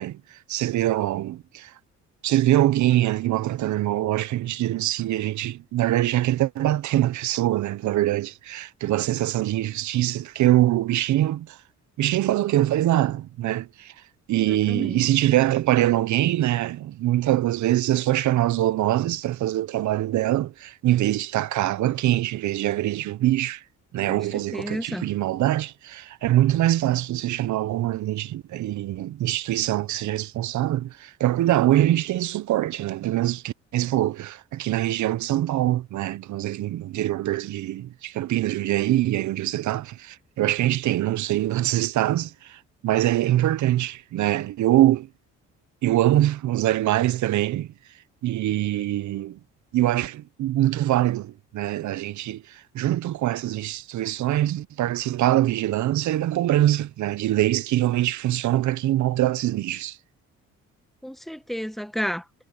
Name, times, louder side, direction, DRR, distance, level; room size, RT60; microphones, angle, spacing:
voice 1, 0.0-1.7 2.2-11.6 12.0-13.9 14.3-23.6 23.9-45.1 45.8-47.7 48.2-49.4 49.7-60.0, right 14 dB, 70° right, 0.8 m, -23 dB
voice 2, 14.5-15.0 24.0-25.0 61.0-62.2, equal, ahead, 1.1 m, -32 dB
cardioid pair, 90°, 30 cm